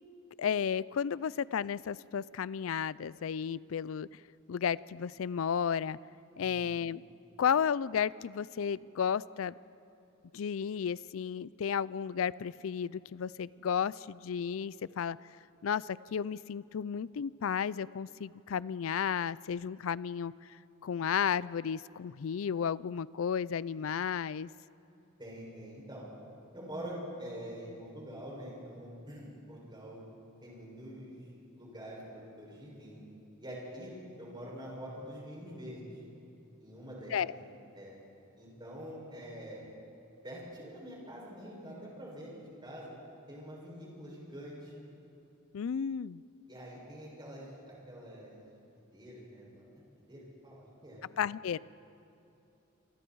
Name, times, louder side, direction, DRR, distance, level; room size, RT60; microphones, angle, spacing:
voice 1, 0.4-4.1 4.5-6.0 6.4-7.0 7.4-9.6 10.3-15.2 15.6-20.3 20.8-24.5 37.1-37.3 45.5-46.2 51.2-51.6, left 7 dB, 75° left, 20 dB, 0.4 m, -33 dB
voice 2, 6.3-6.7 25.2-26.1 26.5-30.0 30.4-31.2 31.6-33.0 33.4-35.8 36.6-37.3 37.7-37.9 38.4-39.6 40.2-42.9 43.3-44.7 46.5-48.5 48.9-49.4 50.1-51.2, equal, 20° right, -4 dB, 7.3 m, -45 dB
27.5 x 25.5 x 4.7 m, 2.8 s
head